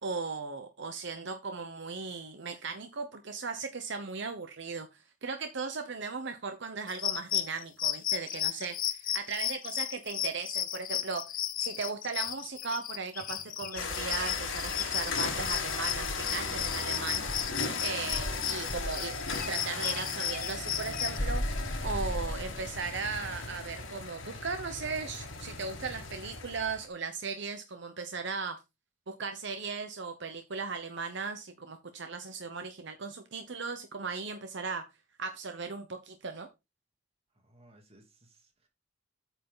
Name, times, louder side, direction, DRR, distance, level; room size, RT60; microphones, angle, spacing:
voice 1, 0.0-11.3 11.6-17.2 17.8-19.2 19.5-28.6 29.1-34.9 35.2-36.5, right 4 dB, 65° right, 0.9 m, -37 dB
sound 1, 6.9-21.2, left 11 dB, 45° left, 0.8 m, -34 dB
sound 2, 13.8-26.9, left 4 dB, 90° left, 2.1 m, -37 dB
Insect, 15.3-17.6 18.1-19.5 21.2-22.8, equal, 20° left, 0.9 m, -36 dB
voice 2, 37.3-38.7, right 1 dB, 30° right, 2.3 m, -61 dB
8.6 x 5.5 x 3.9 m
head